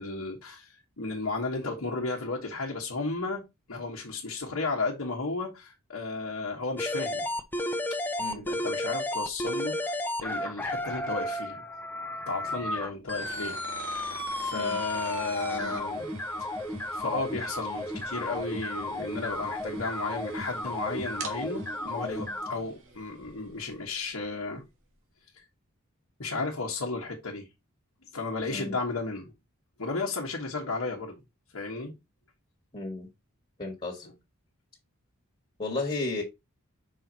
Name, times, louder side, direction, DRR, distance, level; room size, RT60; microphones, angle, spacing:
voice 1, 0.0-3.4 3.7-7.3 8.3-11.6 12.3-16.1 16.4-16.6 16.9-24.6 25.3-25.4 26.2-27.5 28.1-29.3 29.8-31.2 31.5-31.9 34.0-34.1, left 3 dB, 70° left, 1.4 m, -34 dB
sound 1, 6.8-22.5, left 1 dB, 10° left, 0.7 m, -33 dB
sound 2, 13.2-24.0, right 4 dB, 65° right, 1.8 m, -45 dB
voice 2, 32.7-33.1 33.6-34.1 35.6-36.2, left 2 dB, 30° left, 1.7 m, -33 dB
5.6 x 4.5 x 4.0 m
head